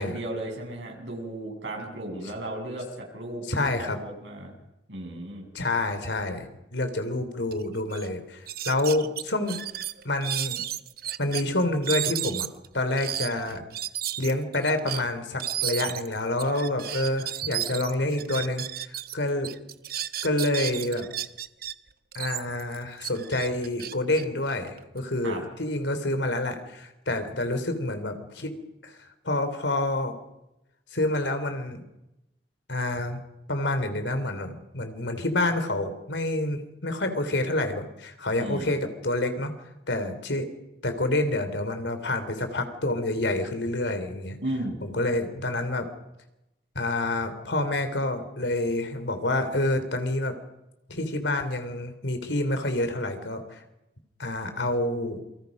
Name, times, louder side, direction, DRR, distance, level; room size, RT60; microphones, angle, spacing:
voice 1, 0.0-4.5 4.9-5.5 25.2-25.4 38.4-38.7 44.4-44.8, right 1 dB, 85° right, 1 dB, 7.3 m, -35 dB
voice 2, 3.5-4.0 5.5-9.6 10.0-10.6 11.2-12.5 12.7-13.6 14.2-19.5 20.2-21.1 22.1-28.5 28.8-30.1 30.9-31.8 32.7-33.2 33.5-39.5 39.9-40.5 40.8-44.4 44.8-45.9 46.7-50.3 50.9-53.6 54.2-55.2, left 2 dB, 80° left, 8 dB, 3.3 m, -28 dB
sound 1, 7.5-7.6 7.9-8.1 8.5-11.4 11.8-19.1 19.4-21.7 22.1-25.0, right 12 dB, 55° right, 0.9 m, -33 dB
28.5 x 24.5 x 5.4 m, 0.93 s
head